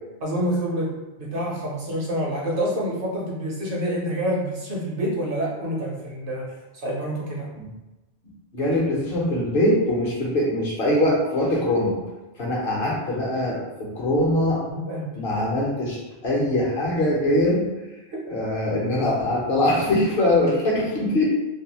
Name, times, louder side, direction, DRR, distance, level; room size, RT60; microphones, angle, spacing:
voice 1, 0.2-0.9 1.2-7.5 14.7-15.1, equal, 60° right, -3 dB, 0.7 m, -27 dB
voice 2, 8.5-12.0 12.4-14.6 15.2-17.7 18.3-21.2, left 1 dB, 60° left, -4 dB, 0.9 m, -22 dB
2.6 x 2.2 x 2.8 m, 1.1 s
omnidirectional pair, 1.2 m